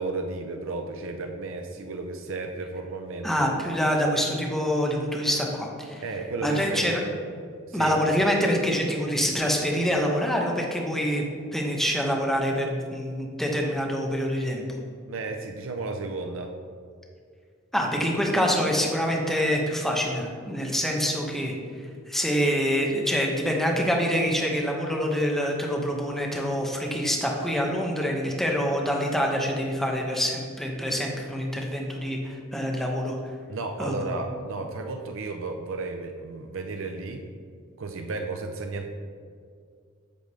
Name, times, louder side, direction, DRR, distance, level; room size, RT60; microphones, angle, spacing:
voice 1, 0.0-3.5 4.2-4.3 6.0-7.0 7.7-8.0 15.1-16.5 20.6-20.7 33.5-37.2 37.8-38.9, right 3 dB, 65° right, 5 dB, 0.6 m, -33 dB
voice 2, 3.2-6.0 6.4-7.1 7.7-11.2 11.5-14.6 17.7-21.5 22.1-33.2 33.8-34.2, equal, ahead, 0 dB, 1.0 m, -26 dB
8.3 x 3.8 x 6.7 m, 2.1 s
head